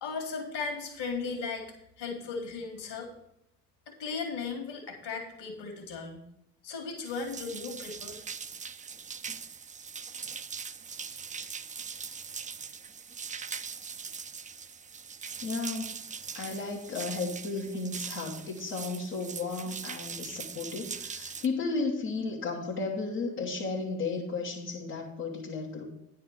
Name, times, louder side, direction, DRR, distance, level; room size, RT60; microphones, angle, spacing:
voice 1, 0.0-1.7 2.0-3.1 3.9-6.3 6.6-8.2, left 4 dB, 65° left, 4 dB, 1.9 m, -36 dB
sound 1, 7.0-21.5, right 6 dB, 20° right, 0.4 m, -41 dB
voice 2, 15.4-16.0 16.3-25.8, left 3 dB, 90° left, -7 dB, 1.3 m, -34 dB
9.8 x 4.4 x 6.6 m, 0.81 s
hypercardioid pair, 45°, 43 cm